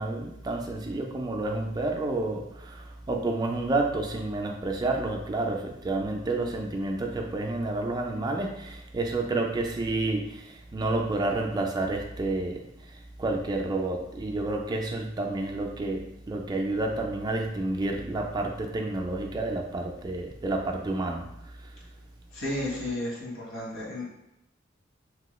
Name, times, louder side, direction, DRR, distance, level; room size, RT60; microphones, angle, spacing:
voice 1, 0.0-12.7 13.2-21.3, right 2 dB, 20° right, 1 dB, 0.3 m, -30 dB
voice 2, 22.3-24.1, left 1 dB, 75° left, -4 dB, 1.2 m, -33 dB
2.9 x 2.3 x 3.0 m, 0.86 s
head